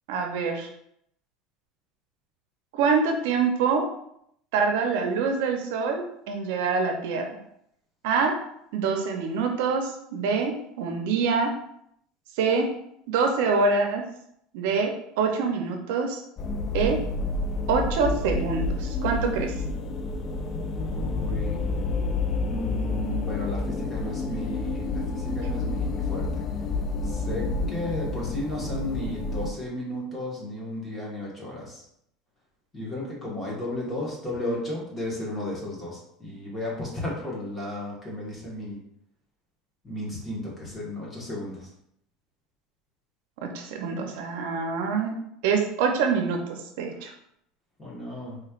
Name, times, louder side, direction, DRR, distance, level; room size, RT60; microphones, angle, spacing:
voice 1, 0.1-0.7 2.7-3.9 4.5-7.2 8.0-8.3 8.7-11.5 12.4-12.7 13.1-14.0 14.5-16.2 16.7-17.0 17.7-19.5 43.4-45.1 45.4-47.1, right 5 dB, 80° right, 3 dB, 0.6 m, -25 dB
sound 1, 16.4-29.5, left 3 dB, 35° left, 0.3 m, -29 dB
voice 2, 20.9-21.6 22.5-26.4 27.0-31.8 32.7-38.8 39.8-41.7 47.8-48.4, left 1 dB, 15° left, -5 dB, 1.4 m, -34 dB
4.2 x 3.2 x 2.4 m, 0.74 s
supercardioid pair, 140°, 0 cm